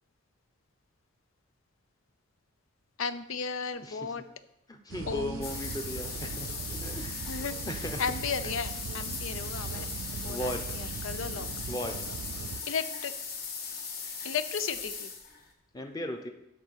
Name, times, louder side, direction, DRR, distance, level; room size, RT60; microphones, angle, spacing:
voice 1, 3.0-4.2 5.1-5.5 7.3-7.6 8.0-9.9 10.1-11.5 12.7-13.1 14.2-15.1, left 5 dB, 80° left, 12 dB, 0.5 m, -34 dB
voice 2, 3.8-4.1 4.7-7.2 7.7-8.0 10.3-10.8 11.7-12.0 15.7-16.3, left 1 dB, 20° left, 5 dB, 0.8 m, -37 dB
sound 1, 4.9-12.6, right 6 dB, 75° right, 0.3 m, -40 dB
sound 2, 5.4-15.5, left 5 dB, 50° left, 1.3 m, -39 dB
9.8 x 4.1 x 6.4 m, 0.87 s
head